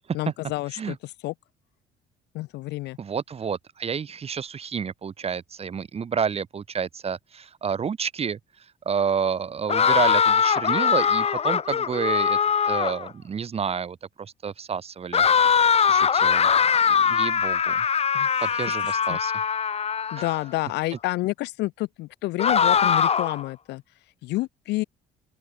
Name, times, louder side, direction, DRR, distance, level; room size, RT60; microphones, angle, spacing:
voice 1, 0.1-1.3 2.3-3.0 18.1-19.2 20.1-23.8 24.2-24.8, left 19 dB, 85° left, 4.5 m, -29 dB
voice 2, 3.0-8.4 8.8-12.4 12.7-17.8 18.4-19.3, right 6 dB, 35° right, 3.2 m, -30 dB
sound 1, 9.7-13.1 15.1-20.4 22.4-23.4, left 7 dB, 35° left, 2.7 m, -21 dB
open air
cardioid pair, 110°, 17 cm